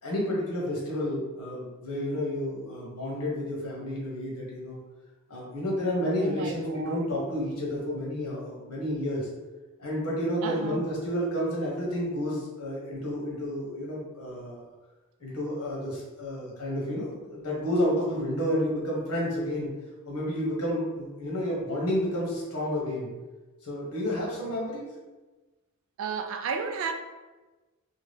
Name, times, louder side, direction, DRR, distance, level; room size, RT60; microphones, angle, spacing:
voice 1, 0.0-4.8 5.3-9.3 9.8-14.6 15.2-19.7 20.0-23.1 23.6-24.9, equal, 90° left, -4 dB, 1.0 m, -30 dB
voice 2, 6.2-7.1 10.4-10.8 26.0-26.9, right 5 dB, 65° right, 6 dB, 0.3 m, -33 dB
2.8 x 2.2 x 3.2 m, 1.2 s
head